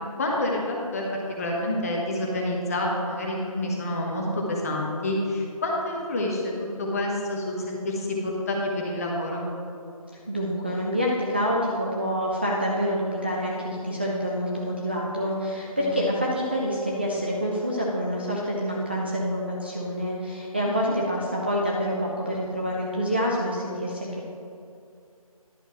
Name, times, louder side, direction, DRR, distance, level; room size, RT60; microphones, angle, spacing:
voice 1, 0.0-6.5 6.8-9.5 15.8-16.3 20.6-20.9, left 1 dB, 25° left, -1 dB, 1.1 m, -28 dB
voice 2, 10.3-24.3, equal, 15° right, -5 dB, 0.4 m, -27 dB
10.5 x 5.7 x 4.3 m, 2.5 s
figure-of-eight pair, 155°, 19 cm